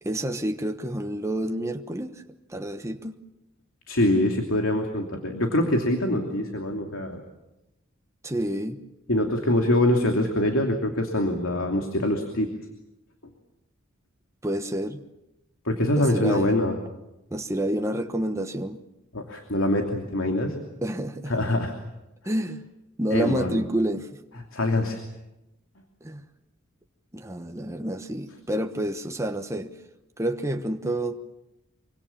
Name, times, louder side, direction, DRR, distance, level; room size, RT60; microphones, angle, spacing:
voice 1, 0.0-2.2 2.5-3.2 8.2-8.8 14.4-15.0 16.0-16.6 17.3-18.8 20.8-21.3 22.2-22.6 23.0-24.1 26.0-26.2 27.1-29.7 30.2-31.2, right 1 dB, 15° right, 5 dB, 1.1 m, -29 dB
voice 2, 3.9-7.2 9.1-12.5 15.6-16.7 19.1-20.6 21.3-21.7 23.1-23.6 24.5-25.0, left 1 dB, 75° left, 3 dB, 2.9 m, -24 dB
25.5 x 24.5 x 7.3 m, 0.94 s
head